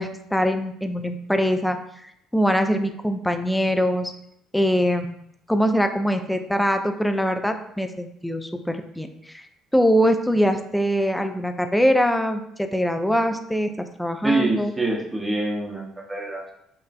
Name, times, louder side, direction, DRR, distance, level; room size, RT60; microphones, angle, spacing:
voice 1, 0.0-1.8 2.0-4.1 4.5-5.2 5.5-9.5 9.7-14.7, equal, 5° left, 6 dB, 0.3 m, -23 dB
voice 2, 14.2-16.5, right 2 dB, 20° right, 0 dB, 0.7 m, -25 dB
3.0 x 2.4 x 2.3 m, 0.75 s
figure-of-eight pair, 50°, 0 cm